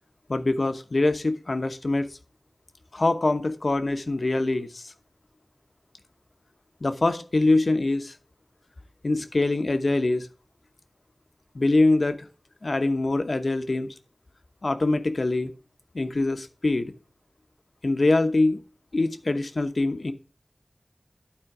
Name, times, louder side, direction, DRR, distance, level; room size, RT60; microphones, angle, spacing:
voice 1, 0.3-2.1 2.9-4.9 6.8-8.1 9.0-10.3 11.5-12.3 12.6-13.9 14.6-15.5 15.9-16.9 17.8-18.6 18.9-20.1, left 2 dB, 70° left, 9 dB, 1.0 m, -24 dB
12.0 x 4.4 x 4.9 m, 0.38 s
wide cardioid pair, 55°, 0 cm